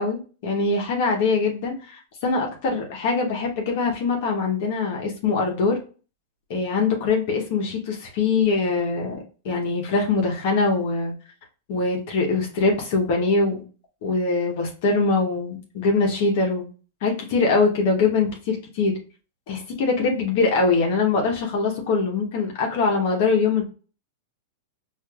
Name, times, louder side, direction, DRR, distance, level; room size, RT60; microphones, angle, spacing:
voice 1, 0.0-5.8 6.5-9.2 9.4-11.1 11.7-13.6 14.0-16.6 17.0-18.9 19.5-23.6, left 4 dB, 55° left, 0 dB, 0.9 m, -23 dB
4.4 x 2.5 x 2.3 m, 0.36 s
hypercardioid pair, 135°, 0 cm